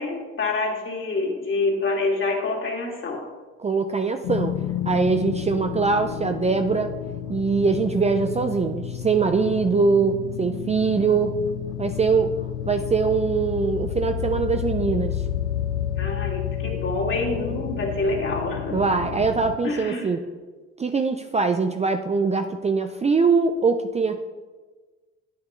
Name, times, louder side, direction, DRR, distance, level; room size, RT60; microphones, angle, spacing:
voice 1, 0.0-3.2 16.0-18.8 19.6-20.1, left 3 dB, 40° left, -1 dB, 2.4 m, -27 dB
voice 2, 3.6-4.6 4.8-7.0 7.3-11.4 11.8-12.4 12.7-15.2 18.7-20.2 20.8-24.2, right 4 dB, 20° right, 7 dB, 0.5 m, -22 dB
sound 1, 4.2-19.6, left 10 dB, 85° left, 0.6 m, -30 dB
9.1 x 8.8 x 3.2 m, 1.3 s
supercardioid pair, 75°, 30 cm